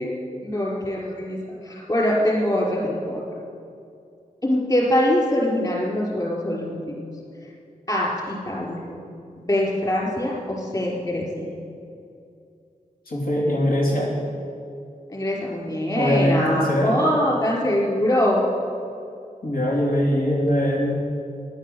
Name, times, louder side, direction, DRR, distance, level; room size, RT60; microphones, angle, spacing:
voice 1, 0.0-1.4 1.6-3.2 4.4-6.8 7.9-8.8 9.4-11.2 15.1-18.4, left 1 dB, 25° left, -3 dB, 4.7 m, -23 dB
voice 2, 13.1-14.2 16.0-17.0 19.4-21.0, equal, 80° left, -3 dB, 3.1 m, -22 dB
14.5 x 11.0 x 7.9 m, 2.5 s
wide cardioid pair, 115°, 15 cm